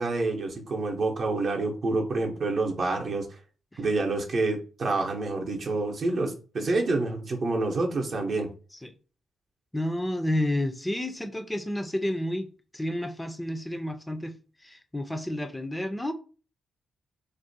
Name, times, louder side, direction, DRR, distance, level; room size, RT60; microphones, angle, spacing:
voice 1, 0.0-3.3 3.8-8.5, right 3 dB, 55° right, 0.6 m, -27 dB
voice 2, 9.7-12.5 12.7-14.4 14.6-16.1, left 1 dB, 10° left, 0.3 m, -30 dB
2.4 x 2.1 x 2.6 m
cardioid pair, 70°, 0 cm